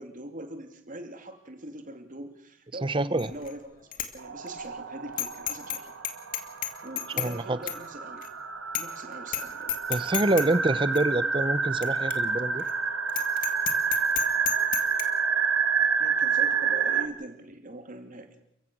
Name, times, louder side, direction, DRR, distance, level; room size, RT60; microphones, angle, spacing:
voice 1, 0.0-3.8 4.1-6.1 6.8-8.3 8.8-9.8 16.0-18.4, right 1 dB, 40° right, 6 dB, 2.6 m, -42 dB
voice 2, 2.8-3.3 7.2-7.6 9.9-12.6, right 2 dB, 25° right, 14 dB, 0.8 m, -26 dB
Bicycle bell, 3.2-3.5 3.9-4.1 4.5-4.6 5.2-5.8 6.0-7.3 7.7-7.8 8.2-8.3 8.7-9.0 9.3-9.4 9.7-10.5 10.9-11.0 11.8-11.9 12.1-12.2 12.6-12.7 13.1-15.0, left 11 dB, 40° left, 2.0 m, -31 dB
sound 1, 4.2-17.1, right 6 dB, 70° right, 1.6 m, -29 dB
29.5 x 15.5 x 6.2 m, 0.77 s
head